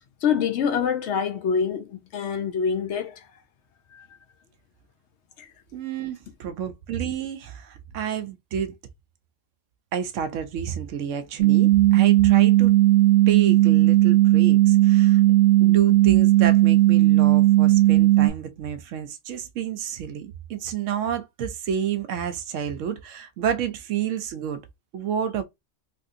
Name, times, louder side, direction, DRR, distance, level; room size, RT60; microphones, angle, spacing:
voice 1, 0.2-3.2 3.9-4.1 5.4-5.5, left 7 dB, 70° left, 0.9 m, -25 dB
voice 2, 5.7-8.7 9.9-12.7 13.3-15.2 15.6-24.6 24.9-25.4, right 8 dB, 85° right, 1.0 m, -30 dB
sound 1, 11.4-18.3, right 16 dB, 60° right, 0.8 m, -16 dB
3.3 x 2.6 x 2.5 m
omnidirectional pair, 1.3 m